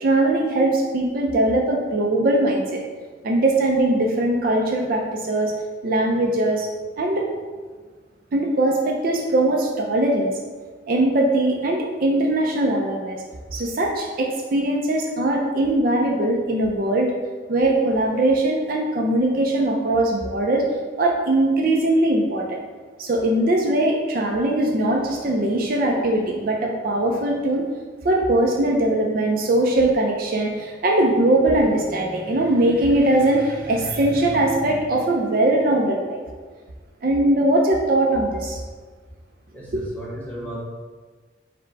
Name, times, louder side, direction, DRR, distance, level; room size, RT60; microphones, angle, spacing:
voice 1, 0.0-2.8 3.2-5.6 5.8-6.7 7.0-7.3 8.3-10.3 10.9-13.2 13.5-17.1 17.5-20.6 21.0-22.6 23.0-27.6 28.0-36.2 37.0-38.6 39.7-39.8, right 1 dB, 50° right, 1 dB, 0.4 m, -20 dB
voice 2, 39.5-40.6, right 1 dB, 10° left, -6 dB, 0.9 m, -35 dB
5.0 x 2.1 x 4.5 m, 1.4 s
head